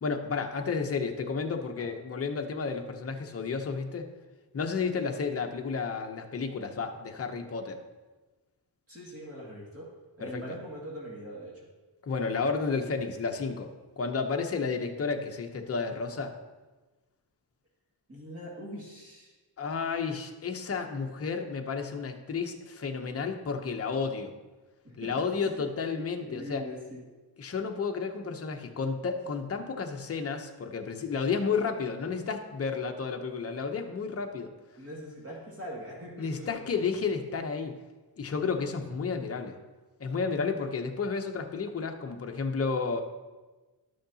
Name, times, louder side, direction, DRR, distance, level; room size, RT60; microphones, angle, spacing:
voice 1, 0.0-4.1 4.5-7.8 10.2-10.4 12.0-13.7 14.0-16.4 19.6-24.3 25.0-26.6 27.4-34.5 36.2-37.7 38.2-39.6 40.0-43.0, left 5 dB, 35° left, 4 dB, 0.7 m, -32 dB
voice 2, 8.9-9.9 10.2-11.7 18.1-19.3 24.8-25.3 25.9-27.0 34.8-36.7, equal, 35° right, -5 dB, 2.1 m, -42 dB
11.5 x 6.5 x 2.8 m, 1.2 s
wide cardioid pair, 120°, 42 cm